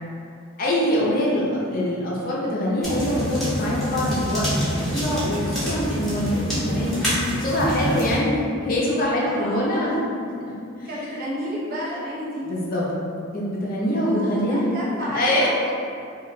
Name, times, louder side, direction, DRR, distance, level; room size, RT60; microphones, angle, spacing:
voice 1, 0.6-7.0 7.4-10.0 10.8-10.9 12.5-12.9 13.3-14.7 15.1-15.5, left 1 dB, 45° left, -5 dB, 0.5 m, -24 dB
sound 1, 2.8-8.2, equal, ahead, 0.9 m, -26 dB
voice 2, 9.2-10.0 10.8-12.5 14.1-15.7, equal, 45° right, -7 dB, 0.7 m, -31 dB
2.9 x 2.3 x 3.1 m, 2.4 s
head